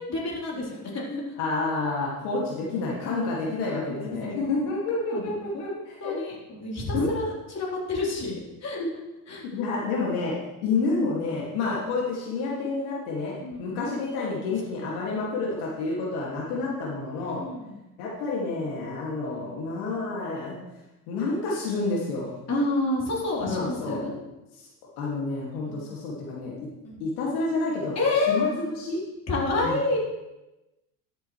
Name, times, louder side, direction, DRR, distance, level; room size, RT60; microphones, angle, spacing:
voice 1, 0.0-1.2 3.7-4.6 5.1-8.3 8.6-8.8 9.3-9.5 13.4-13.8 17.3-17.8 22.5-24.1 25.7-25.9 26.8-27.0 28.0-28.5 29.3-30.0, left 2 dB, 35° left, -4 dB, 4.0 m, -29 dB
voice 2, 1.4-6.2 6.9-7.1 9.5-10.3 10.6-17.4 18.0-20.6 21.1-22.3 23.4-24.0 24.6-24.7 25.0-26.7 27.0-27.9 28.3-29.0 29.5-29.8, left 3 dB, 85° left, -4 dB, 2.4 m, -29 dB
13.0 x 8.0 x 3.3 m, 0.99 s
supercardioid pair, 100°, 43 cm